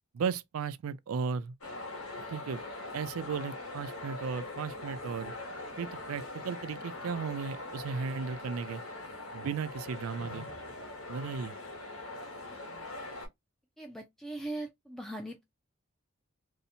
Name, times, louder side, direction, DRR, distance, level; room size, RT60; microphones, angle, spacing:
voice 1, 0.1-1.5 2.2-2.6 2.9-5.3 5.8-8.8 9.3-10.5 11.1-11.5, right 6 dB, 90° right, 0.4 m, -35 dB
sound 1, 1.6-13.3, left 2 dB, 90° left, 1.2 m, -42 dB
voice 2, 13.8-15.4, right 2 dB, ahead, 0.3 m, -40 dB
2.7 x 2.0 x 2.6 m
head